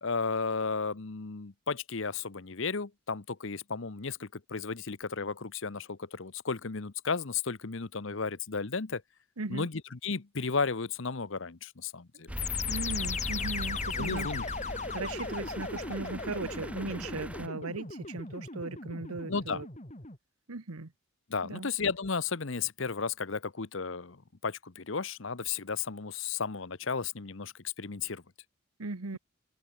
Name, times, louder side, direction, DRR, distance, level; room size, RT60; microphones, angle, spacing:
voice 1, 0.0-9.0 9.5-12.3 14.0-14.5 19.3-19.6 21.3-28.2, left 5 dB, 60° left, 0.9 m, -34 dB
voice 2, 9.4-9.7 12.7-14.3 14.9-19.7 20.5-20.9 21.4-21.7 28.8-29.2, right 3 dB, 90° right, 1.3 m, -37 dB
sound 1, 12.3-17.5, equal, 5° right, 0.7 m, -39 dB
sound 2, 12.4-20.2, left 5 dB, 35° left, 3.1 m, -37 dB
head